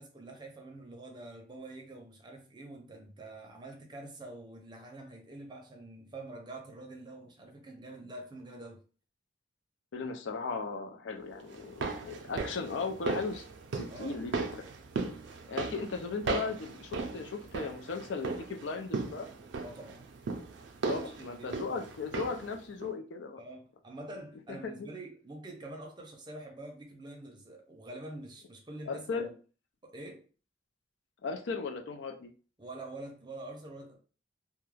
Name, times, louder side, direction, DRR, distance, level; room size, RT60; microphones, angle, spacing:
voice 1, 0.0-8.8 13.9-14.2 15.4-15.8 19.6-20.1 20.9-21.8 23.4-29.3 29.8-30.3 32.6-34.0, right 2 dB, 25° right, 0.6 m, -46 dB
voice 2, 9.9-13.4 13.7-14.6 15.5-19.3 20.9-23.4 24.5-24.9 28.9-29.3 31.2-32.3, left 4 dB, 90° left, 0.4 m, -37 dB
sound 1, 11.5-22.5 22.8-22.9, right 4 dB, 75° right, 0.4 m, -37 dB
2.3 x 2.1 x 3.1 m
head